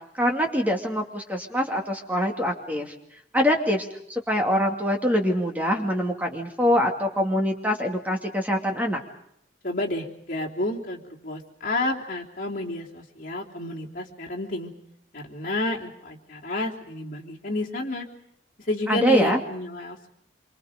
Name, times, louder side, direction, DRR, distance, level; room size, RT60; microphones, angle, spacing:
voice 1, 0.1-2.9 3.3-9.0 18.9-19.4, equal, 10° right, 2 dB, 2.5 m, -24 dB
voice 2, 9.6-14.7 15.1-18.1 18.7-20.1, left 1 dB, 50° left, -2 dB, 3.4 m, -30 dB
27.0 x 25.0 x 5.2 m, 0.72 s
head